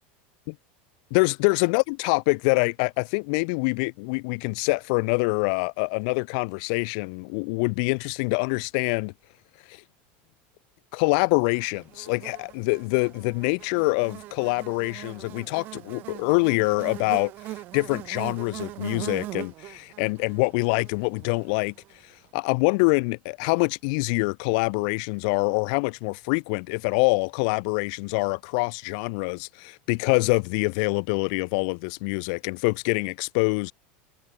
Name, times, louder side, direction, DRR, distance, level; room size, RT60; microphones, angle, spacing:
voice 1, 1.1-9.1 9.7-9.8 10.9-17.3 17.7-21.7 22.3-33.7, left 34 dB, 50° left, 1.1 m, -25 dB
Buzz, 11.5-21.9, right 17 dB, 35° right, 1.3 m, -41 dB
supercardioid pair, 175°, 6 cm